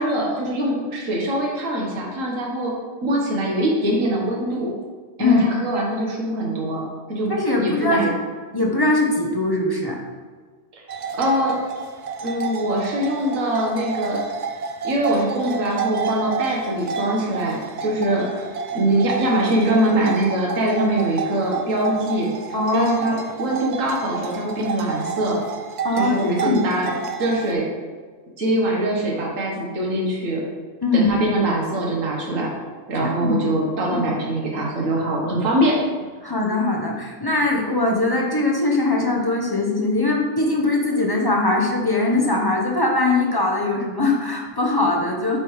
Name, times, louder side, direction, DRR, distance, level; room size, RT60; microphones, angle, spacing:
voice 1, 0.0-2.7 3.0-4.7 5.2-7.3 7.6-8.1 10.7-10.8 11.2-11.6 12.2-14.2 14.8-18.4 18.7-22.3 22.7-25.4 25.9-26.9 27.2-27.7 28.4-30.4 30.9-32.5 32.9-35.8, right 1 dB, 90° right, -2 dB, 1.5 m, -23 dB
voice 2, 7.3-8.1 8.5-10.0 22.5-22.9 25.8-26.6 30.8-31.1 33.0-33.4 33.9-34.0 36.2-45.4, left 2 dB, 20° left, -1 dB, 0.7 m, -21 dB
sound 1, 10.9-27.5, right 5 dB, 75° right, 0.4 m, -30 dB
7.7 x 3.4 x 4.6 m, 1.5 s
omnidirectional pair, 1.3 m